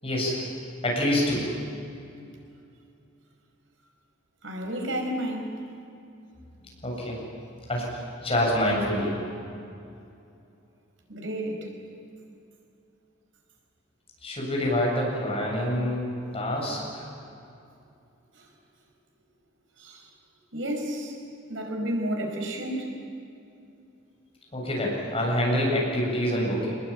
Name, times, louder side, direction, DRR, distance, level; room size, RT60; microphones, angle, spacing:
voice 1, 0.0-1.5 6.8-7.2 7.7-7.9 8.2-9.1 14.2-17.1 24.5-26.7, left 1 dB, 30° left, -2 dB, 7.9 m, -26 dB
voice 2, 4.4-5.6 11.1-11.7 19.8-20.0 20.5-21.2 21.5-22.9, right 1 dB, 80° right, 2 dB, 5.3 m, -31 dB
26.5 x 21.0 x 9.0 m, 2.6 s
head